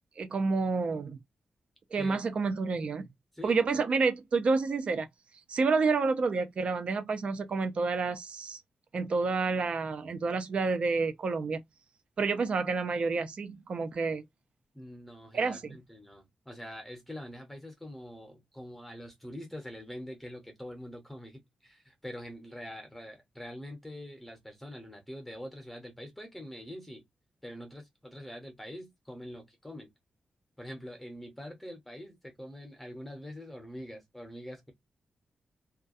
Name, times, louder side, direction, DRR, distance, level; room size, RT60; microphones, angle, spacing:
voice 1, 0.2-1.2 1.9-3.1 3.4-5.1 5.5-8.6 8.9-11.6 12.2-14.2 15.3-15.8, right 4 dB, 45° right, 0.5 m, -29 dB
voice 2, 3.3-3.8 14.7-27.0 27.4-29.9 30.6-34.7, equal, 5° left, 0.8 m, -44 dB
2.3 x 2.1 x 2.5 m
wide cardioid pair, 180°, 3 cm